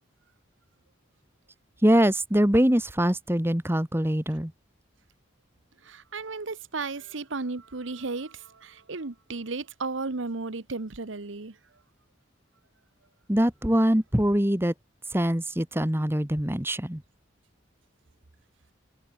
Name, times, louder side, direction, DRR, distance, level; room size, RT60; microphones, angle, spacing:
voice 1, 1.8-4.5 13.3-14.7 15.1-17.0, equal, 10° right, 1.6 m, -23 dB
voice 2, 5.8-11.5, right 3 dB, 90° right, 1.1 m, -34 dB
head